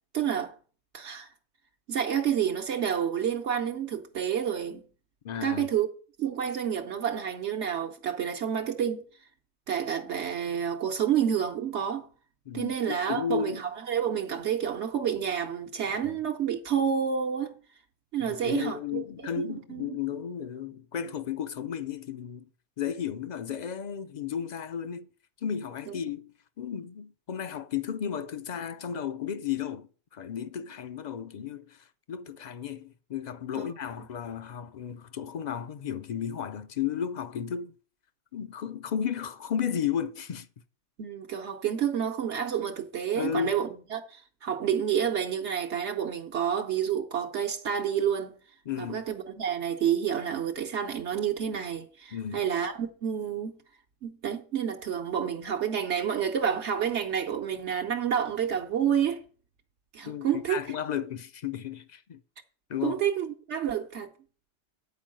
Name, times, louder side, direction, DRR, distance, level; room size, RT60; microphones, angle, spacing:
voice 1, 0.1-0.5 0.9-1.3 1.9-4.8 5.4-5.9 6.2-9.0 9.7-12.1 12.5-17.6 18.1-19.3 19.7-20.0 33.6-33.7 41.0-48.4 48.8-53.6 54.0-59.2 59.9-60.6 62.8-64.1, right 8 dB, 75° right, 1.1 m, -29 dB
voice 2, 5.2-5.7 12.5-13.6 16.0-16.2 18.2-22.5 22.8-25.1 25.4-37.7 38.3-40.5 43.1-43.6 48.7-49.0 52.1-52.4 60.1-62.2 62.7-63.0, left 8 dB, 50° left, 0.6 m, -34 dB
9.4 x 4.6 x 7.5 m
omnidirectional pair, 1.2 m